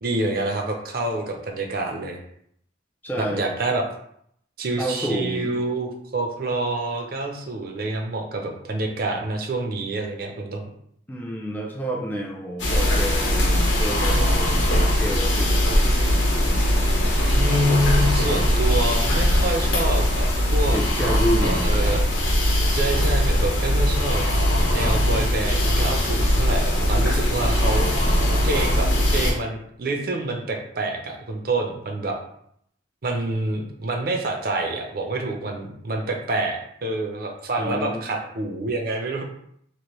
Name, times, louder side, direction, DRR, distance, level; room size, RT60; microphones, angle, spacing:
voice 1, 0.0-2.2 3.2-3.8 4.6-10.7 17.3-20.8 21.4-22.0 22.7-24.2 24.7-27.9 28.4-32.2 33.0-39.2, right 2 dB, 55° right, 2 dB, 0.5 m, -27 dB
voice 2, 3.0-3.5 4.8-5.6 11.1-15.5 20.7-21.8 26.7-27.1 37.6-38.1, equal, 10° left, -1 dB, 0.4 m, -29 dB
sound 1, 12.6-29.3, equal, 85° left, 0.8 m, -20 dB
3.0 x 2.5 x 3.0 m, 0.69 s
head